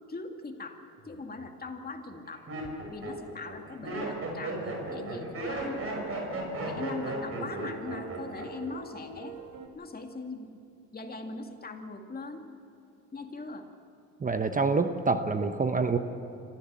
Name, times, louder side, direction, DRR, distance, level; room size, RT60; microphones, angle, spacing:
voice 1, 0.0-2.5 2.9-5.8 6.6-9.4 9.7-10.5 10.9-12.4 13.1-13.7, left 3 dB, 30° left, 4 dB, 2.3 m, -40 dB
Laughter, 1.1-1.5 2.1-8.7 9.0-9.5, right 2 dB, 50° right, 5.6 m, -36 dB
sound 1, 4.0-9.7, right 5 dB, 70° right, 1.8 m, -46 dB
voice 2, 14.2-16.0, right 4 dB, 25° right, 8 dB, 1.0 m, -26 dB
26.5 x 14.5 x 7.5 m, 2.8 s
cardioid pair, 90°, 30 cm